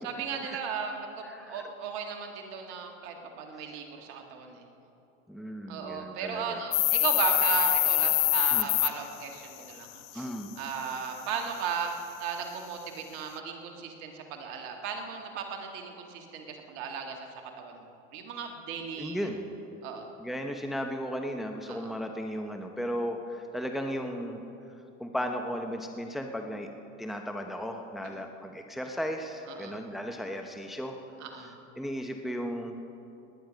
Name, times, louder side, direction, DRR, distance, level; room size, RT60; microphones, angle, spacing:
voice 1, 0.0-4.6 5.7-9.9 10.1-10.3 10.6-11.9 12.2-17.2 17.6-17.8 18.1-19.2 19.8-20.1 21.7-21.9 29.5-29.8 31.2-31.5, right 6 dB, 75° right, 3 dB, 2.0 m, -36 dB
voice 2, 1.3-1.6 5.3-6.6 8.5-8.7 10.1-10.5 19.0-19.5 20.2-24.4 25.0-26.7 27.0-31.0 31.3-32.8, equal, ahead, 4 dB, 1.0 m, -35 dB
sound 1, 6.7-8.9, left 20 dB, 50° left, 0.5 m, -24 dB
19.5 x 10.0 x 5.2 m, 2.8 s
hypercardioid pair, 85°, 36 cm